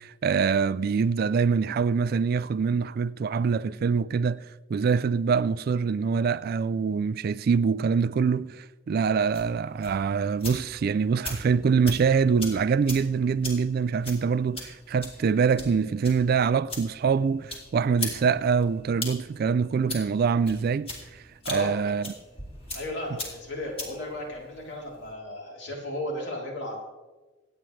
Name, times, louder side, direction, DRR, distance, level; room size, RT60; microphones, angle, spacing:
voice 1, 0.0-4.4 4.7-22.1, right 5 dB, 50° right, 0.3 m, -24 dB
sound 1, 9.2-25.1, left 2 dB, 30° left, 2.5 m, -41 dB
voice 2, 21.4-21.9 22.7-26.8, left 1 dB, 65° left, 3.5 m, -35 dB
25.5 x 9.0 x 3.2 m
head